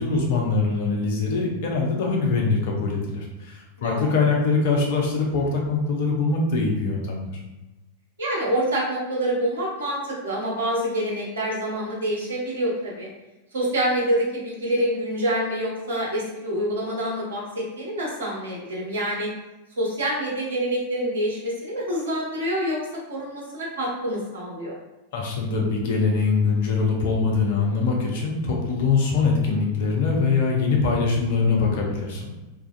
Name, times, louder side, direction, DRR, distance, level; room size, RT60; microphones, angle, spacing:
voice 1, 0.0-7.4 25.1-32.3, left 4 dB, 50° left, -1 dB, 0.5 m, -23 dB
voice 2, 3.8-4.1 8.2-13.1 13.5-19.3 19.8-22.8 23.1-24.7, right 1 dB, 65° right, -4 dB, 0.6 m, -26 dB
2.3 x 2.2 x 2.4 m, 1.0 s
figure-of-eight pair, 90°, 0 cm